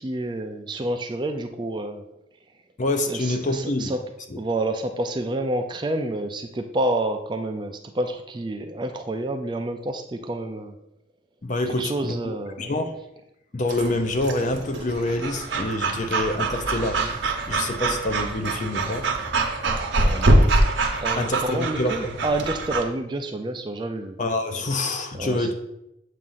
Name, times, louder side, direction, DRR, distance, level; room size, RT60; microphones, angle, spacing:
voice 1, 0.0-2.0 3.1-4.0 4.4-10.8 11.7-12.8 19.9-20.4 21.0-24.2 25.1-25.5, right 1 dB, 25° right, 6 dB, 0.3 m, -29 dB
voice 2, 2.8-3.9 4.3-4.4 11.4-12.2 12.6-13.0 13.5-19.1 21.2-22.1 24.2-25.5, left 2 dB, 40° left, 7 dB, 0.5 m, -26 dB
Breathing / Dog, 13.7-22.8, right 2 dB, 70° right, 0.8 m, -24 dB
7.3 x 2.5 x 5.5 m, 0.85 s
head